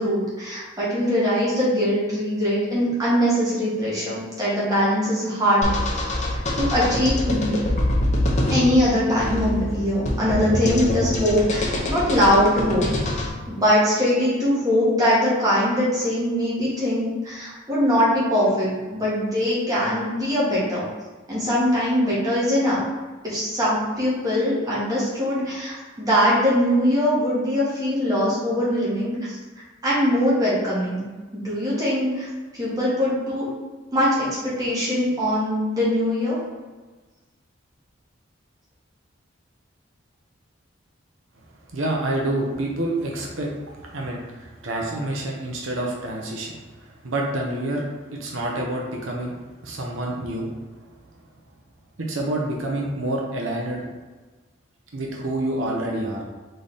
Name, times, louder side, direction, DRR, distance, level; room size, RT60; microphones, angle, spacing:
voice 1, 0.0-5.7 6.0-6.1 6.6-7.5 8.5-12.8 13.5-20.8 21.3-22.8 23.2-29.4 29.8-31.0 31.3-32.3 32.5-33.5 33.9-36.4, equal, 20° right, -8 dB, 1.4 m, -22 dB
sound 1, 5.6-13.3, left 1 dB, 35° left, 0.7 m, -24 dB
voice 2, 41.7-43.5 43.8-46.6 47.0-49.3 49.6-50.5 52.0-53.8 54.9-56.2, right 1 dB, 80° right, -2 dB, 0.8 m, -27 dB
3.9 x 3.2 x 4.1 m, 1.3 s
head